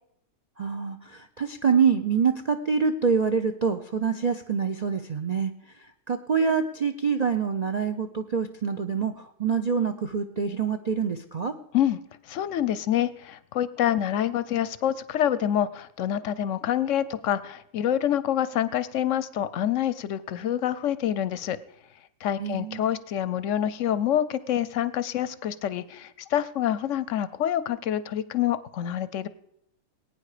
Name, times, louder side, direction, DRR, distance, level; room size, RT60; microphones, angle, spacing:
voice 1, 0.6-5.5 6.1-11.5 22.4-22.9, right 6 dB, 55° right, 8 dB, 0.4 m, -26 dB
voice 2, 12.3-21.6 22.2-29.3, left 10 dB, 60° left, 16 dB, 0.9 m, -27 dB
20.0 x 9.2 x 4.9 m, 0.77 s
omnidirectional pair, 1.7 m